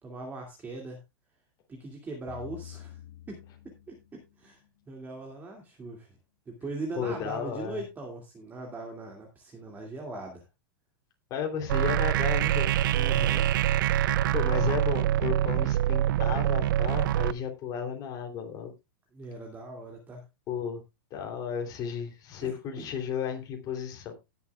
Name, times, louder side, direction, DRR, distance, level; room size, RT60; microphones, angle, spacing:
voice 1, 0.0-1.0 1.7-3.0 3.3-4.6 4.9-6.1 6.5-10.4 12.9-13.5 19.1-20.2 22.4-22.9, right 2 dB, 15° right, 1 dB, 2.4 m, -40 dB
sound 1, 2.3-4.7, left 12 dB, 70° left, 1.8 m, -47 dB
voice 2, 7.0-7.8 11.3-12.9 14.0-18.7 20.5-20.8 21.1-24.1, left 7 dB, 30° left, 3 dB, 3.1 m, -34 dB
sound 2, 11.7-17.3, right 12 dB, 70° right, 0.5 m, -25 dB
19.0 x 7.2 x 2.4 m, 0.24 s
hypercardioid pair, 140°, 11 cm